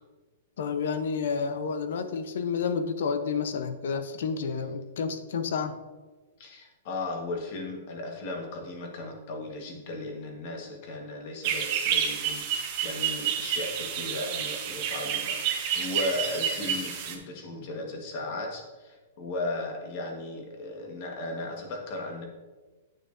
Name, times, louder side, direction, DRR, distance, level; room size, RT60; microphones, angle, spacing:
voice 1, 0.6-5.8, left 5 dB, 70° left, 10 dB, 0.7 m, -30 dB
voice 2, 6.4-22.3, left 2 dB, 40° left, 2 dB, 1.4 m, -36 dB
sound 1, 11.4-17.1, right 8 dB, 35° right, 1.0 m, -29 dB
10.0 x 6.3 x 2.6 m, 1.3 s
supercardioid pair, 170°, 0 cm